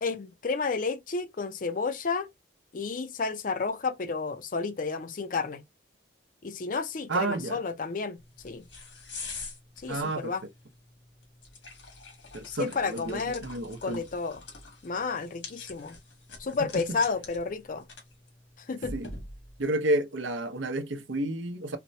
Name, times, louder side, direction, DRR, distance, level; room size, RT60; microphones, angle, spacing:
voice 1, 0.0-2.3 2.7-5.6 6.4-8.2 8.4-8.7 9.8-10.4 12.5-13.4 13.8-14.4 14.8-16.0 16.4-17.9 18.7-18.9, left 4 dB, 45° left, 0.4 m, -31 dB
voice 2, 7.1-7.6 9.9-10.3 12.3-14.0 16.7-16.8 18.9-19.1 19.6-21.8, right 2 dB, 80° right, 0.7 m, -30 dB
sound 1, 8.2-19.6, left 3 dB, 80° left, 1.6 m, -45 dB
4.2 x 2.1 x 2.6 m
head